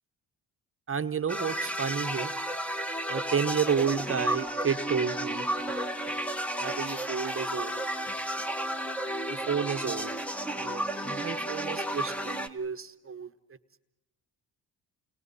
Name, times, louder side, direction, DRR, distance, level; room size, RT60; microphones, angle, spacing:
voice 1, 0.9-2.3 3.1-5.9 6.6-7.8 9.5-10.1 10.5-13.3, right 6 dB, 30° right, 9 dB, 1.1 m, -31 dB
sound 1, 1.3-12.5, right 1 dB, 5° left, 1.3 m, -32 dB
29.5 x 29.0 x 4.2 m, 0.94 s
supercardioid pair, 65°, 41 cm